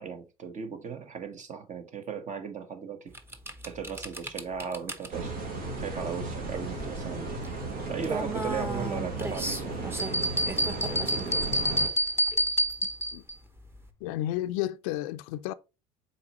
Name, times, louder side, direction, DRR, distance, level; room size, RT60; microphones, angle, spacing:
voice 1, 0.0-3.1 3.7-5.4 5.8-7.3 7.9-9.8, right 6 dB, 45° right, 1.3 m, -37 dB
sound 1, 3.1-13.9, right 2 dB, 15° right, 0.9 m, -38 dB
sound 2, 5.1-11.9, right 2 dB, 70° right, 2.5 m, -35 dB
sound 3, 10.0-13.3, equal, 15° left, 0.8 m, -27 dB
voice 2, 14.0-15.5, left 14 dB, 80° left, 0.5 m, -32 dB
7.0 x 4.3 x 3.1 m
supercardioid pair, 80°, 18 cm